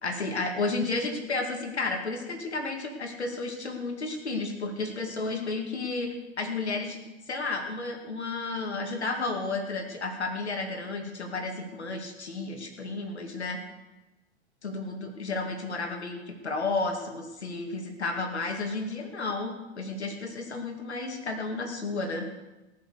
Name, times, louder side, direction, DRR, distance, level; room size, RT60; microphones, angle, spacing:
voice 1, 0.0-7.0 7.3-13.6 14.6-22.3, left 3 dB, 85° left, 4 dB, 2.5 m, -32 dB
19.0 x 7.1 x 6.7 m, 1.1 s
hypercardioid pair, 95°, 32 cm